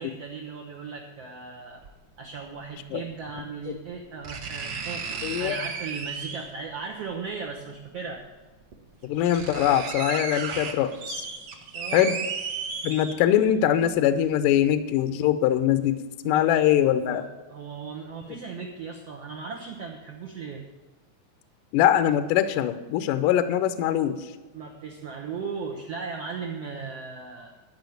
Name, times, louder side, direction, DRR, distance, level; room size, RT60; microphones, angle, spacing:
voice 1, 0.0-1.8 2.2-8.2 11.7-12.2 16.2-16.6 17.0-17.2 17.5-20.6 24.5-27.5, right 5 dB, 80° right, 0 dB, 1.3 m, -37 dB
sound 1, 1.8-1.9 3.4-3.5 4.2-6.6 8.0-8.1 8.7-8.8 9.0-13.5 13.9-14.0, right 5 dB, 65° right, 1.4 m, -34 dB
voice 2, 5.2-5.6 9.0-11.3 11.9-12.1 12.8-17.2 21.7-24.3, left 11 dB, 80° left, 11 dB, 1.9 m, -23 dB
12.0 x 5.8 x 9.1 m, 1.2 s
omnidirectional pair, 4.4 m